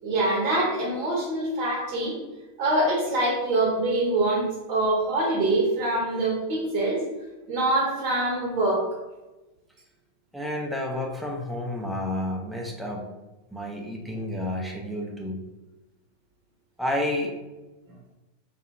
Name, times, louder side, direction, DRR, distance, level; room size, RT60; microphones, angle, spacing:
voice 1, 0.0-2.2 2.6-7.0 7.5-8.8, right 2 dB, 40° right, -4 dB, 0.7 m, -24 dB
voice 2, 10.3-13.1 13.5-15.4 16.8-17.3, left 1 dB, ahead, -1 dB, 0.4 m, -30 dB
2.7 x 2.2 x 2.2 m, 1.1 s
figure-of-eight pair, 90°, 0 cm